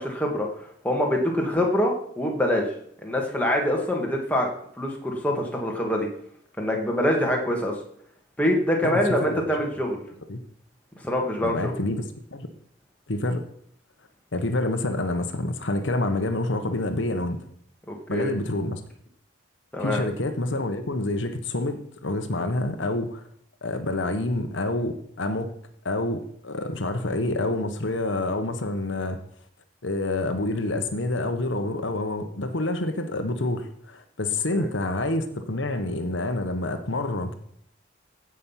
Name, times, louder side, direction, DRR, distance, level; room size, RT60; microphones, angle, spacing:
voice 1, 0.0-2.6 3.0-4.5 4.8-6.1 6.6-7.7 8.4-10.0 11.0-11.7 17.9-18.3 19.7-20.0 34.5-34.7, equal, 10° left, 0 dB, 2.1 m, -25 dB
voice 2, 8.8-9.4 10.3-10.4 11.4-12.0 12.3-12.5 13.1-13.4 14.3-17.4 18.1-18.8 19.8-23.2 23.6-25.5 25.8-29.2 29.8-37.3, left 2 dB, 75° left, 7 dB, 1.2 m, -27 dB
15.5 x 6.3 x 5.8 m, 0.68 s
head